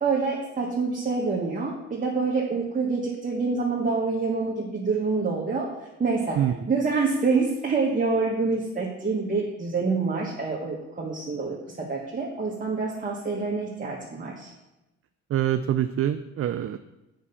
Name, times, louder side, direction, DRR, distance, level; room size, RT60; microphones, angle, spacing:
voice 1, 0.0-5.7 6.0-6.4 6.7-14.5, right 4 dB, 25° right, -4 dB, 1.6 m, -26 dB
voice 2, 6.4-6.7 15.3-16.8, right 11 dB, 50° right, 10 dB, 0.5 m, -25 dB
7.4 x 5.6 x 7.0 m, 0.96 s
cardioid pair, 90°, 30 cm